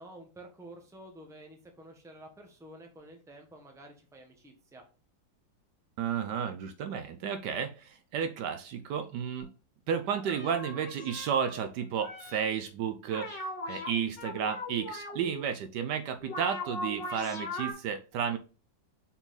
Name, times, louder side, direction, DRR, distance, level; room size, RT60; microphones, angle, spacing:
voice 1, 0.0-4.8, right 1 dB, ahead, 0.9 m, -50 dB
voice 2, 6.0-9.5 9.9-18.4, right 7 dB, 70° right, 1.1 m, -32 dB
sound 1, 9.4-9.5 10.1-12.4 13.1-13.9 14.2-15.4 16.2-17.7, left 1 dB, 70° left, 2.7 m, -39 dB
5.8 x 4.2 x 4.0 m
omnidirectional pair, 2.0 m